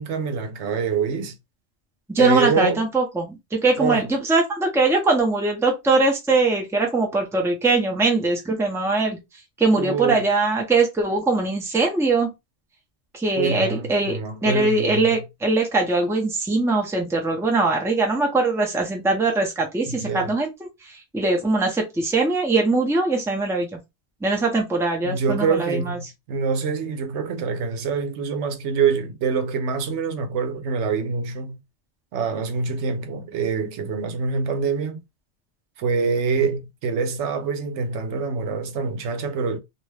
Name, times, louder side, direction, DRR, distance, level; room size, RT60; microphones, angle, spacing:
voice 1, 0.0-1.3 2.2-2.8 3.8-4.0 9.8-10.2 13.3-15.1 19.9-20.3 25.0-31.6 32.1-35.0 35.8-39.6, right 5 dB, 85° right, 1.0 m, -25 dB
voice 2, 2.1-9.2 9.6-12.3 13.1-14.2 14.4-20.5 20.8-23.7 24.2-26.0, right 3 dB, 5° right, 0.6 m, -21 dB
2.5 x 2.2 x 3.2 m
omnidirectional pair, 1.1 m